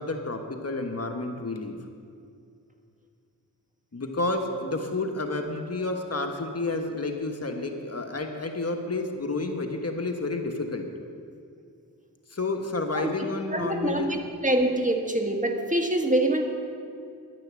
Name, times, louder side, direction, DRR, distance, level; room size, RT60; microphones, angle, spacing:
voice 1, 0.0-1.8 3.9-10.9 12.3-14.1, left 2 dB, 40° left, 4 dB, 1.4 m, -30 dB
voice 2, 13.5-16.4, right 1 dB, 20° right, 4 dB, 1.6 m, -25 dB
11.0 x 10.5 x 7.6 m, 2.4 s
cardioid pair, 50°, 36 cm